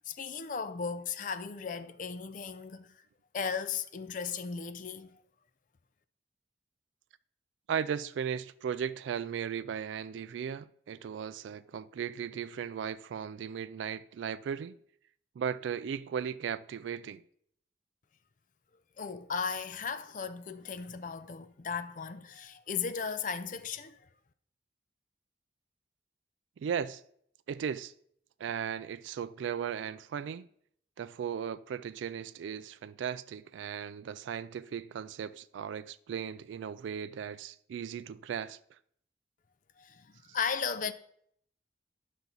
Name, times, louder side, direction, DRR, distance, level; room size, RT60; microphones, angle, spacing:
voice 1, 0.0-3.0 3.3-5.2 19.0-24.0 39.8-40.9, left 6 dB, 45° left, 0.5 m, -36 dB
voice 2, 7.7-14.8 15.4-17.2 26.6-27.0 27.5-27.9 28.4-30.5 31.0-38.6, right 8 dB, 90° right, 0.3 m, -36 dB
11.0 x 5.9 x 4.0 m
head